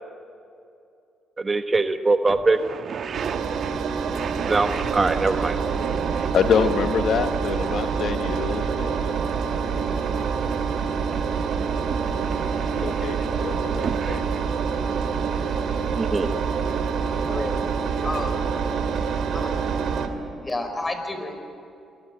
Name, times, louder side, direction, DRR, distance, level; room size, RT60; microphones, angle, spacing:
voice 1, 1.4-2.6 4.5-5.6 15.9-16.3, right 3 dB, 25° right, 8 dB, 1.1 m, -22 dB
sound 1, 1.9-2.0 2.3-10.8 11.1-14.4, right 6 dB, 55° right, 1.1 m, -36 dB
Engine, 3.1-20.1, right 6 dB, 70° right, 2.9 m, -26 dB
voice 2, 6.3-9.1 12.7-14.2, left 7 dB, 65° left, 8 dB, 1.0 m, -26 dB
voice 3, 16.9-17.6 18.0-18.5 19.3-19.8 20.4-21.3, left 2 dB, 20° left, 7 dB, 4.9 m, -31 dB
28.0 x 21.5 x 9.1 m, 2.6 s
cardioid pair, 90°, 0 cm